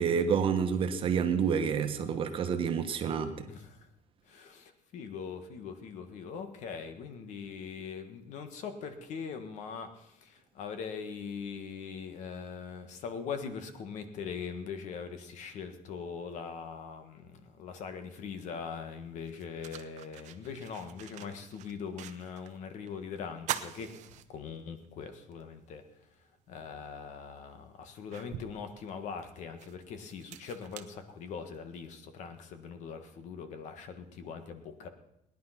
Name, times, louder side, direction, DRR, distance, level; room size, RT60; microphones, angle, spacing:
voice 1, 0.0-3.5, right 6 dB, 40° right, 7 dB, 1.2 m, -28 dB
voice 2, 3.5-3.9 4.3-25.8 26.5-34.9, left 6 dB, 60° left, 8 dB, 1.7 m, -41 dB
sound 1, 18.6-18.7 19.2-22.6 22.9-23.0 23.4-24.9 25.3-25.4 26.8-26.9 27.5-31.7, right 12 dB, 60° right, 0.9 m, -43 dB
18.5 x 10.5 x 5.9 m, 0.80 s
cardioid pair, 165°, 14 cm